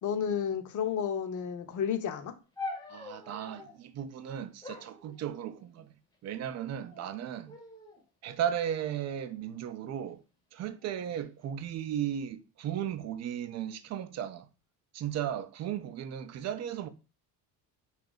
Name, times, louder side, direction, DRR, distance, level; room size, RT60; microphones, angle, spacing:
voice 1, 0.0-2.3, left 8 dB, 45° left, 0.7 m, -31 dB
sound 1, 2.6-3.8 4.6-5.8 6.6-7.1 7.5-8.0 8.7-10.0 10.8-11.2, left 3 dB, 10° left, 0.7 m, -45 dB
voice 2, 2.9-6.0 6.2-7.5 8.2-10.2 10.5-14.5 14.9-16.9, right 10 dB, 40° right, 0.4 m, -35 dB
2.7 x 2.4 x 3.8 m
cardioid pair, 105°, 44 cm